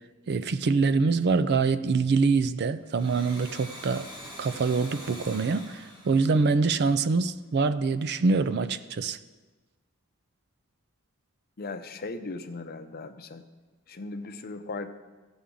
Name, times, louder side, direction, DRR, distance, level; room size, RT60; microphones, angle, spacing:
voice 1, 0.3-4.1 4.4-9.2, right 4 dB, 50° right, 12 dB, 0.4 m, -25 dB
Domestic sounds home sounds, 2.8-7.3, equal, 25° right, 1.9 m, -45 dB
voice 2, 11.6-13.4 13.9-14.9, left 3 dB, 45° left, 8 dB, 0.7 m, -37 dB
16.5 x 7.1 x 3.8 m, 1.3 s
head